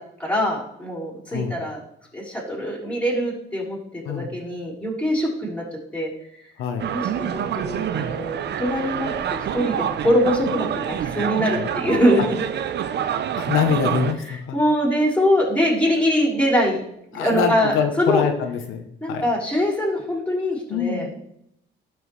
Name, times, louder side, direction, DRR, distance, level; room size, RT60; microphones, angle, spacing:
voice 1, 0.2-1.8 2.1-5.6 5.9-6.4 6.9-9.8 10.0-12.2 14.3-16.8 17.1-18.2 19.0-21.2, equal, 5° left, -5 dB, 3.6 m, -23 dB
voice 2, 6.6-6.9 11.5-11.8 12.2-12.3 13.4-14.6 17.1-19.2 20.7-21.1, left 7 dB, 90° left, 5 dB, 0.8 m, -25 dB
sound 1, 6.8-14.1, right 9 dB, 60° right, 0.6 m, -27 dB
12.5 x 6.2 x 3.1 m, 0.75 s
cardioid pair, 90°, 20 cm